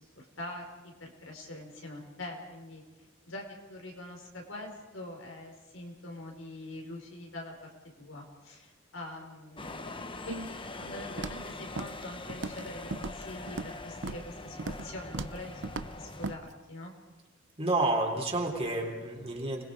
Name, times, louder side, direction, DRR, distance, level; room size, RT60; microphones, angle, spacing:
voice 1, 0.0-2.8 3.3-3.4 3.7-7.7 8.0-16.9, left 1 dB, 80° left, 1 dB, 5.2 m, -44 dB
sound 1, 9.6-16.4, left 2 dB, 25° left, 1.2 m, -43 dB
Walk footsteps, 11.2-11.5 11.8-12.0 12.3-12.7 12.9-13.7 14.0-14.3 14.6-14.9 15.1-15.4 15.6-15.9 16.2-16.4, right 3 dB, 65° right, 0.7 m, -37 dB
voice 2, 17.6-19.6, right 2 dB, 30° right, 0 dB, 3.8 m, -30 dB
29.5 x 21.0 x 5.0 m, 1.2 s
head